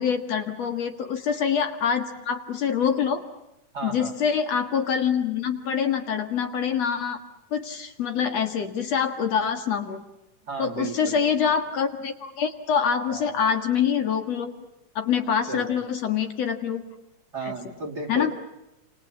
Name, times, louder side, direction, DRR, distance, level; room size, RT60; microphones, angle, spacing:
voice 1, 0.0-3.2 3.8-7.2 7.5-10.0 10.6-14.5 15.0-16.8 18.1-18.3, left 7 dB, 55° left, 7 dB, 2.7 m, -25 dB
voice 2, 3.7-4.2 10.4-11.4 13.1-13.3 15.5-15.8 17.3-18.3, right 3 dB, 35° right, 1 dB, 2.5 m, -34 dB
28.5 x 28.0 x 7.0 m, 0.91 s
omnidirectional pair, 3.7 m